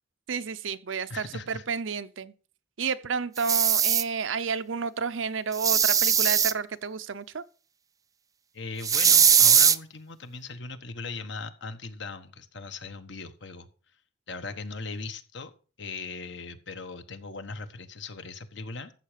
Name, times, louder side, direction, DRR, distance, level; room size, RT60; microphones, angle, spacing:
voice 1, 0.3-2.3 2.8-7.4, right 5 dB, 85° right, 0.7 m, -31 dB
voice 2, 1.1-1.6 8.5-13.7 14.3-15.5 15.8-18.9, left 3 dB, 65° left, 1.3 m, -39 dB
sound 1, 3.4-4.0 5.5-6.5 8.8-9.8, right 7 dB, 20° right, 0.4 m, -20 dB
14.0 x 7.5 x 5.1 m
head